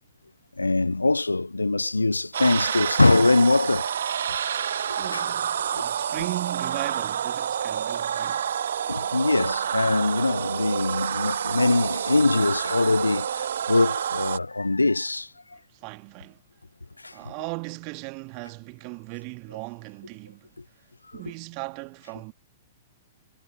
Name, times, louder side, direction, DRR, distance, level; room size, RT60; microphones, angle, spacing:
voice 1, 0.6-3.9 5.1-5.2 6.0-6.1 8.9-15.3 17.0-17.2, left 2 dB, 85° left, 0.4 m, -22 dB
sound 1, 2.3-14.4, right 9 dB, 60° right, 0.5 m, -28 dB
voice 2, 5.0-8.5 15.7-16.4 17.1-20.5 21.1-22.3, right 35 dB, 40° right, 1.8 m, -37 dB
figure-of-eight pair, 110°, 0 cm